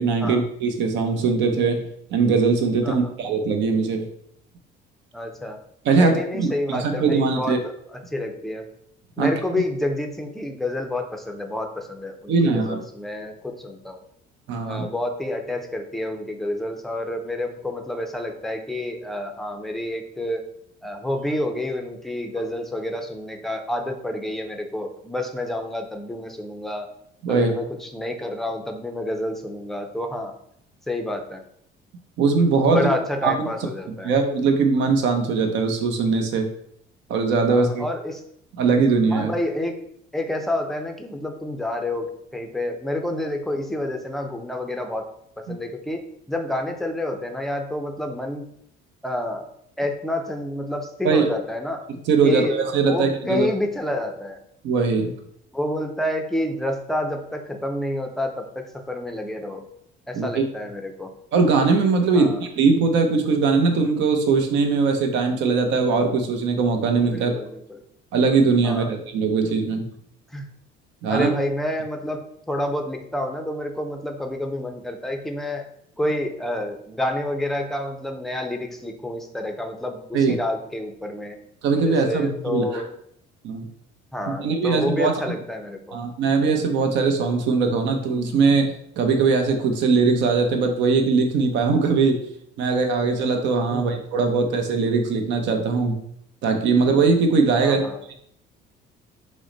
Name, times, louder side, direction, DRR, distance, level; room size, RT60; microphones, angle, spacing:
voice 1, 0.0-1.9 2.1-4.0 5.8-7.6 9.2-9.3 12.3-12.8 14.5-14.8 27.2-27.5 32.2-32.9 33.2-33.3 34.0-36.5 37.1-37.8 38.6-39.3 45.5-45.6 51.0-51.2 52.1-53.5 54.6-55.1 60.1-60.4 61.3-67.3 68.1-69.9 71.0-71.3 80.1-80.3 81.6-82.8 83.4-83.7 84.4-85.1 85.9-92.2 92.6-96.0 96.4-98.1, right 4 dB, 65° right, 4 dB, 0.7 m, -20 dB
voice 2, 5.1-5.6 5.9-8.6 9.2-14.0 14.6-20.5 20.8-26.9 27.3-30.3 30.9-31.4 32.7-34.1 37.5-38.2 39.1-39.8 40.1-45.1 45.4-46.0 46.3-48.5 49.0-49.4 49.8-51.8 52.2-52.6 52.9-54.4 55.5-59.7 60.1-61.1 62.1-62.4 67.1-67.8 68.6-68.9 70.3-70.5 71.1-75.6 76.0-81.4 81.8-82.9 84.1-86.0 93.7-93.9 97.6-98.0, left 1 dB, ahead, 4 dB, 0.5 m, -29 dB
6.2 x 2.1 x 3.9 m, 0.71 s
cardioid pair, 145°, 20 cm